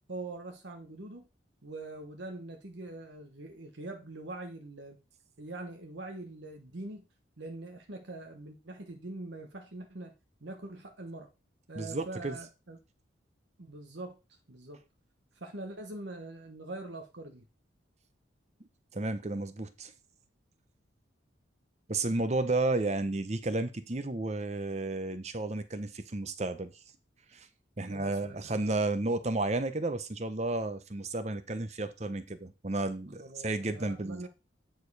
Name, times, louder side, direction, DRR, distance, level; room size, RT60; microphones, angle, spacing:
voice 1, 0.1-1.3 1.6-5.0 5.4-7.1 7.4-10.1 10.4-11.3 11.7-12.8 13.6-14.2 14.5-14.8 15.3-17.4 27.9-28.8 33.2-34.3, right 2 dB, 70° right, 1.2 m, -43 dB
voice 2, 11.8-12.4 18.9-19.9 21.9-26.7 27.3-27.5 27.8-34.3, right 2 dB, 35° right, 0.8 m, -32 dB
9.3 x 4.6 x 4.8 m
head